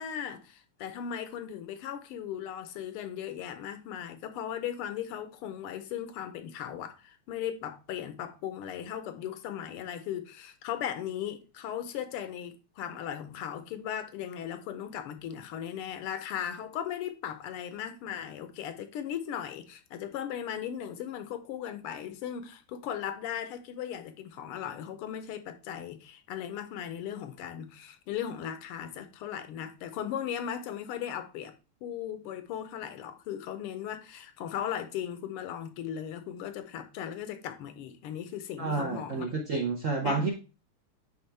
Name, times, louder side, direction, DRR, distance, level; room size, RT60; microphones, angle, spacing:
voice 1, 0.0-31.5 31.8-39.4 40.0-40.2, left 9 dB, 85° left, 1.7 m, -37 dB
voice 2, 38.6-40.3, right 4 dB, 60° right, 0.8 m, -30 dB
9.8 x 3.7 x 3.3 m
omnidirectional pair, 2.4 m